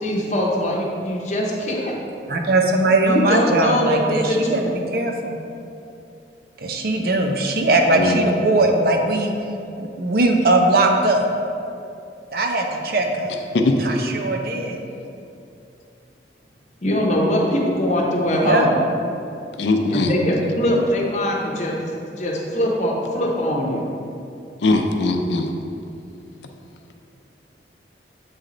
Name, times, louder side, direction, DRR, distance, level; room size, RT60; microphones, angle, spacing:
voice 1, 0.0-2.0 3.0-4.7 16.8-18.8 19.9-21.7 22.2-23.8, equal, 40° left, -2 dB, 0.8 m, -22 dB
voice 2, 2.3-4.6 4.9-5.4 6.6-9.3 9.8-11.3 12.3-13.3 13.8-14.8 18.4-18.7, right 2 dB, 55° right, 3 dB, 0.5 m, -20 dB
voice 3, 19.6-20.1 24.6-25.5, left 2 dB, 80° left, 4 dB, 0.5 m, -20 dB
7.7 x 3.2 x 3.8 m, 2.6 s
head